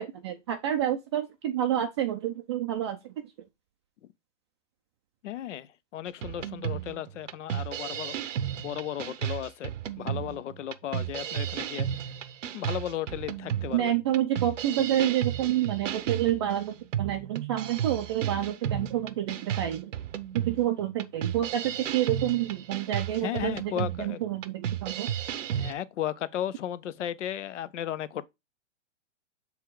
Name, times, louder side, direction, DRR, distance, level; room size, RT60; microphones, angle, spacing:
voice 1, 0.0-3.0 13.7-19.9 20.3-25.1, right 12 dB, 25° right, 0.4 m, -28 dB
voice 2, 5.2-8.2 8.6-11.9 12.5-14.0 23.2-24.2 25.5-28.3, left 11 dB, 80° left, 0.8 m, -35 dB
sound 1, 6.2-25.7, right 10 dB, 90° right, 0.9 m, -33 dB
6.9 x 3.5 x 4.6 m
hypercardioid pair, 150°, 36 cm